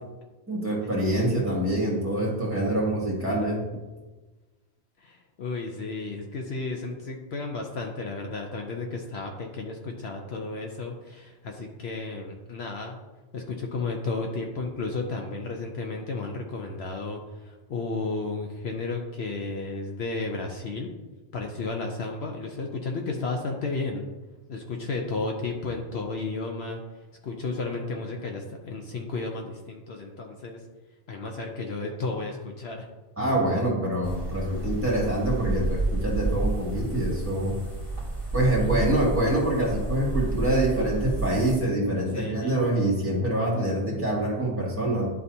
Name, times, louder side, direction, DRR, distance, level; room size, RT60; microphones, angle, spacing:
voice 1, 0.5-3.6 33.2-37.6 38.3-45.1, right 1 dB, 10° right, -5 dB, 1.9 m, -25 dB
voice 2, 5.0-13.0 13.3-20.9 21.3-24.1 24.5-26.8 27.2-30.6 31.1-32.9 42.1-42.6, left 3 dB, 65° left, 2 dB, 0.9 m, -33 dB
sound 1, 34.0-41.6, right 2 dB, 30° left, 2.3 m, -30 dB
11.0 x 4.0 x 2.8 m, 1.2 s
omnidirectional pair, 1.2 m